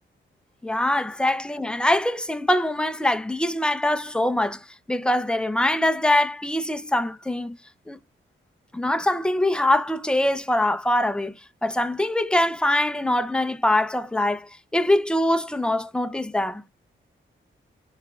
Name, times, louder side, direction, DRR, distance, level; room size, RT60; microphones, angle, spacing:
voice 1, 0.6-4.6 4.9-7.5 7.9-8.0 8.7-11.4 11.6-16.6, left 1 dB, 5° left, 0.5 m, -23 dB
4.4 x 3.9 x 2.3 m
cardioid pair, 90°, 21 cm